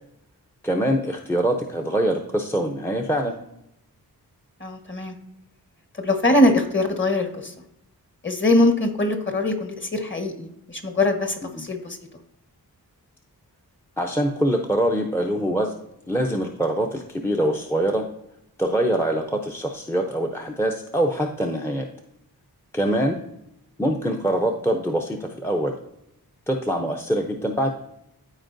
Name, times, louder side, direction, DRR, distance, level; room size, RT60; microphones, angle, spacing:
voice 1, 0.6-3.4 11.5-11.6 14.0-15.7 16.1-18.1 18.6-21.9 22.7-23.2 23.8-25.7 26.5-27.7, right 1 dB, 5° left, 3 dB, 0.7 m, -24 dB
voice 2, 4.6-5.1 6.0-7.5 8.2-12.0, left 1 dB, 30° left, 5 dB, 1.4 m, -22 dB
13.0 x 4.4 x 2.7 m, 0.83 s
wide cardioid pair, 70°, 38 cm